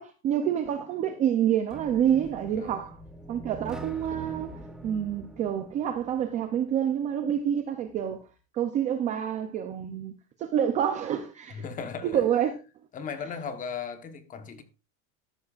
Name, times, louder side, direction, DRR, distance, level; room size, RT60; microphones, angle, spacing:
voice 1, 0.0-3.0 3.3-8.2 8.5-10.1 10.4-11.6 12.0-12.5, right 9 dB, 20° right, 0.4 m, -27 dB
sound 1, 1.7-6.6, right 2 dB, ahead, 0.8 m, -43 dB
voice 2, 2.5-2.9 11.5-12.2 12.9-14.6, left 6 dB, 20° left, 1.1 m, -37 dB
13.5 x 11.5 x 2.4 m
supercardioid pair, 175°, 42 cm